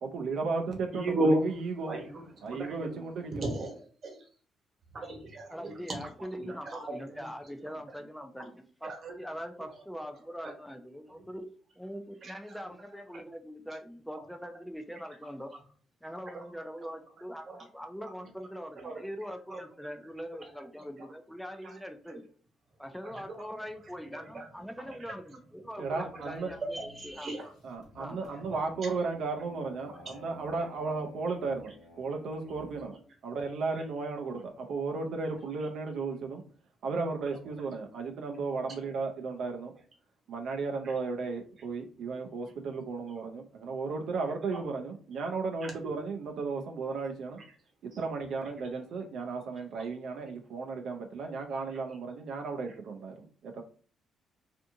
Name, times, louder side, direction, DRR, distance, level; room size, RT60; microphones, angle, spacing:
voice 1, 0.0-2.0 2.4-3.4 25.8-26.5 27.6-31.7 32.0-33.0 33.2-36.4 36.8-39.7 40.3-47.4 48.0-53.6, right 4 dB, 70° right, 2 dB, 0.4 m, -35 dB
voice 2, 0.9-4.3 4.9-7.8 8.4-8.5 8.8-10.6 12.2-12.7 13.1-13.2 13.7-13.8 14.2-14.3 15.2-15.6 16.2-16.9 17.4-17.7 18.0-18.5 18.8-19.1 19.5-19.9 20.3-21.1 21.6-21.8 22.1-22.2 23.0-23.6 24.1-27.6 27.8-29.0 29.3-29.4 29.9-30.2 30.6-31.0 31.6-31.7 32.4-32.5 33.7-33.8 35.6-35.7 37.2-37.7 38.9-39.0 39.7-39.8 40.8-41.0 41.6-41.7 43.2-43.3 44.2-44.7 45.6-46.0 46.9-47.0 47.4-47.5 47.9-48.0 48.4-48.5 49.8-49.9 51.7-52.0 52.7-52.8, right 1 dB, 50° right, 3 dB, 1.0 m, -39 dB
voice 3, 5.5-11.5 11.8-15.5 16.0-22.2 22.8-27.3 28.0-28.2, equal, ahead, 5 dB, 0.3 m, -42 dB
sound 1, 25.8-32.9, left 2 dB, 75° left, 0.9 m, -54 dB
2.5 x 2.5 x 2.5 m, 0.42 s
cardioid pair, 90°, 0 cm